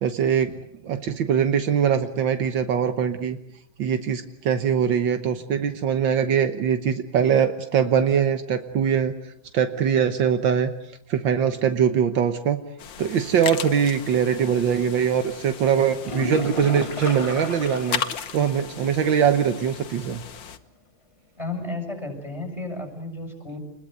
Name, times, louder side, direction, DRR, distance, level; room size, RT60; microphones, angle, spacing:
voice 1, 0.0-3.4 3.8-9.2 9.5-10.7 11.1-12.6 13.0-18.0 18.3-20.2, right 8 dB, 80° right, 8 dB, 1.9 m, -22 dB
sound 1, 12.8-20.6, left 8 dB, 80° left, 2.0 m, -36 dB
sound 2, 16.0-18.3 18.6-18.7 19.1-19.2 23.0-23.1, left 2 dB, 20° left, 0.9 m, -32 dB
voice 2, 21.4-23.6, left 2 dB, 15° right, 5 dB, 6.8 m, -33 dB
27.5 x 21.5 x 7.9 m, 0.72 s
omnidirectional pair, 2.0 m